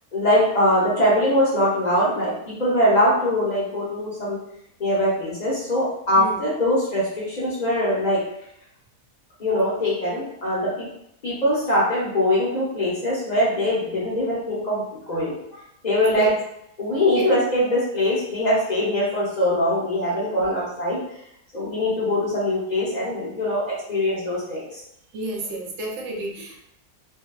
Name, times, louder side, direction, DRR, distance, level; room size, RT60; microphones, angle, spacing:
voice 1, 0.1-4.4 4.8-8.2 9.4-10.9 11.2-15.3 15.8-16.3 16.8-21.0 21.5-24.6, left 1 dB, 45° left, -7 dB, 0.5 m, -22 dB
voice 2, 25.1-26.6, right 1 dB, 65° right, -1 dB, 0.7 m, -31 dB
2.6 x 2.2 x 2.2 m, 0.75 s
omnidirectional pair, 1.7 m